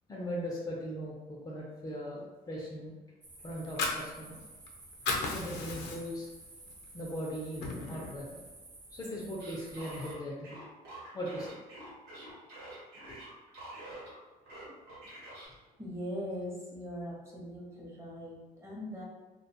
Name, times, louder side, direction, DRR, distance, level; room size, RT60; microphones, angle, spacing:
voice 1, 0.1-2.9 3.4-4.4 5.2-6.3 6.9-8.4 8.9-10.6 11.1-11.6 13.1-13.2, equal, 20° left, -4 dB, 0.5 m, -39 dB
sound 1, 3.2-10.1, right 2 dB, 45° right, 0.8 m, -52 dB
Fire, 3.5-4.7 4.9-6.3 6.7-6.8 7.2-8.2, left 3 dB, 80° left, 0.5 m, -34 dB
sound 2, 9.4-14.1 14.4-15.5, right 1 dB, 80° right, 1.1 m, -47 dB
voice 2, 15.8-19.0, equal, 15° right, -4 dB, 0.8 m, -41 dB
2.3 x 2.2 x 2.7 m, 1.2 s
cardioid pair, 110°, 17 cm